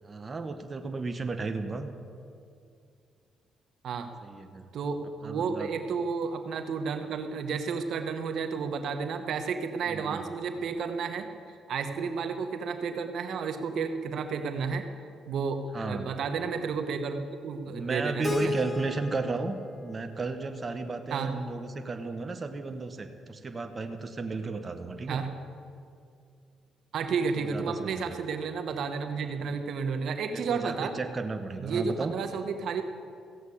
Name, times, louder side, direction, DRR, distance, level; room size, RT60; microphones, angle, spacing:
voice 1, 0.0-1.9 4.2-4.7 5.2-5.7 9.9-10.2 15.7-16.1 17.7-19.6 19.8-25.2 27.4-28.2 29.5-29.6 29.9-32.1, right 3 dB, 30° right, 7 dB, 1.1 m, -34 dB
voice 2, 4.7-11.3 11.7-14.9 15.3-18.5 21.1-21.4 25.1-25.3 26.9-30.9 31.6-32.8, right 5 dB, 70° right, 7 dB, 1.0 m, -32 dB
Keyboard (musical), 18.2-21.2, left 4 dB, 25° left, 0.3 m, -36 dB
15.0 x 7.9 x 8.5 m, 2.4 s
cardioid pair, 90°, 0 cm